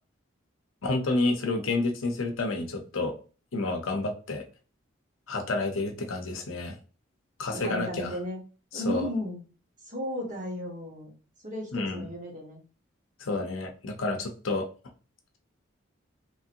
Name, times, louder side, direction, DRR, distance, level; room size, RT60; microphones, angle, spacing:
voice 1, 0.8-3.1 3.5-4.4 5.3-6.8 7.4-8.2 8.7-9.1 11.7-12.0 13.2-14.7, left 2 dB, 85° left, 4 dB, 0.6 m, -29 dB
voice 2, 7.5-8.4 8.7-9.4 9.8-11.1 11.4-12.6, equal, 40° right, -1 dB, 1.0 m, -34 dB
3.1 x 2.8 x 2.5 m, 0.36 s
head